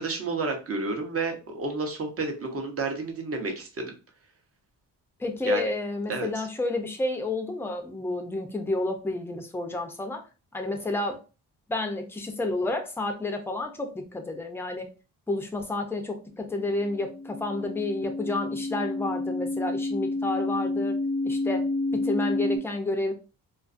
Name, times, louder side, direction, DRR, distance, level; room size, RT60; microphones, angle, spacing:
voice 1, 0.0-3.9 5.4-5.6 6.1-6.4, right 3 dB, 40° right, 4 dB, 0.7 m, -31 dB
voice 2, 5.2-10.3 10.5-11.2 11.7-14.9 15.3-21.0 21.2-21.7 21.9-23.1, left 2 dB, 5° left, 4 dB, 0.4 m, -30 dB
sound 1, 16.8-22.6, left 2 dB, 85° left, 0.7 m, -29 dB
2.4 x 2.3 x 2.4 m, 0.32 s
cardioid pair, 100°, 36 cm